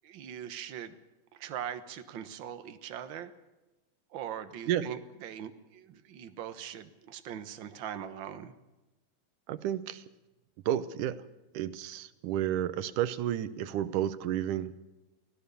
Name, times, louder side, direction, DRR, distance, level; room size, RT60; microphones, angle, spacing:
voice 1, 0.0-0.9 1.3-3.3 4.1-8.5, right 9 dB, 50° right, 10 dB, 1.5 m, -41 dB
voice 2, 9.5-10.0 10.7-11.2 11.5-14.7, right 11 dB, 90° right, 14 dB, 2.5 m, -31 dB
24.5 x 16.5 x 7.0 m, 1.1 s
omnidirectional pair, 3.5 m